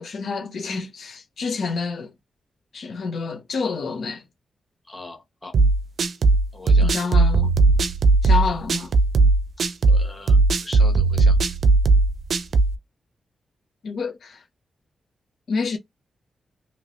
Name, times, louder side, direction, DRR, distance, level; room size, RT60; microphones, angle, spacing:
voice 1, 0.0-2.1 2.7-4.2 6.8-7.5 8.2-8.9 13.8-14.4 15.5-15.8, left 4 dB, 65° left, 0.8 m, -28 dB
voice 2, 4.9-5.5 6.5-7.0 9.9-11.4, left 2 dB, 15° left, 1.4 m, -40 dB
sound 1, 5.5-12.7, right 3 dB, 60° right, 0.5 m, -17 dB
3.0 x 2.9 x 2.6 m
wide cardioid pair, 125°, 0 cm